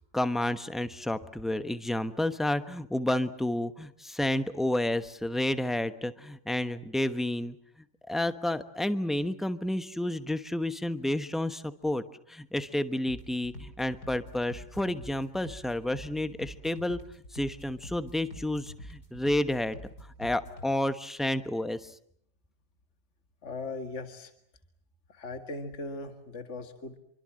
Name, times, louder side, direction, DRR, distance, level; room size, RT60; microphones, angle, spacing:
voice 1, 0.1-7.6 8.1-17.0 17.3-19.8 20.2-21.9, left 1 dB, ahead, 11 dB, 0.8 m, -30 dB
sound 1, 13.1-20.7, equal, 65° left, 6.2 m, -46 dB
voice 2, 23.4-24.3 25.1-27.0, left 3 dB, 45° left, 7 dB, 2.3 m, -39 dB
27.0 x 24.0 x 7.7 m, 0.66 s
omnidirectional pair, 1.8 m